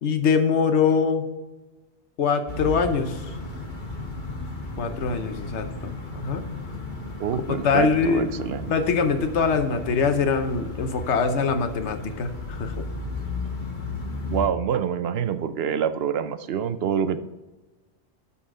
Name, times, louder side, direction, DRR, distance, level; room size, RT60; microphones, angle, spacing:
voice 1, 0.0-1.3 2.2-3.2 4.8-6.4 7.5-8.3 8.7-12.8, left 5 dB, 85° left, 7 dB, 1.2 m, -23 dB
sound 1, 2.5-14.5, left 2 dB, 45° left, 1.6 m, -34 dB
voice 2, 7.2-8.7 14.3-17.2, right 8 dB, 70° right, 11 dB, 0.8 m, -26 dB
12.5 x 4.2 x 3.7 m, 1.2 s
omnidirectional pair, 1.2 m